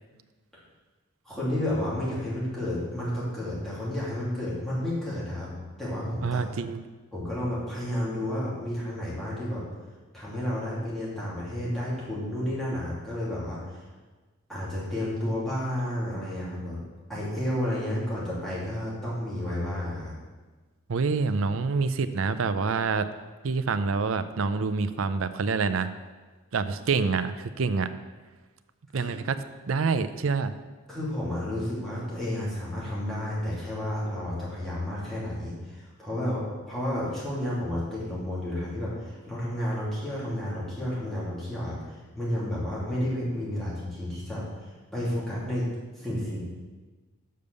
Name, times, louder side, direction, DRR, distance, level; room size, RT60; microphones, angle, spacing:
voice 1, 1.2-5.5 5.8-6.4 7.1-9.6 10.1-13.9 14.5-16.8 17.1-20.1 28.9-29.1 30.9-45.7 46.0-46.4, left 1 dB, ahead, -9 dB, 2.6 m, -31 dB
voice 2, 6.2-6.8 20.9-23.1 23.4-25.9 26.5-27.9 28.9-29.4 29.7-30.5, right 4 dB, 75° right, 12 dB, 0.5 m, -26 dB
6.6 x 5.3 x 6.7 m, 1.3 s
head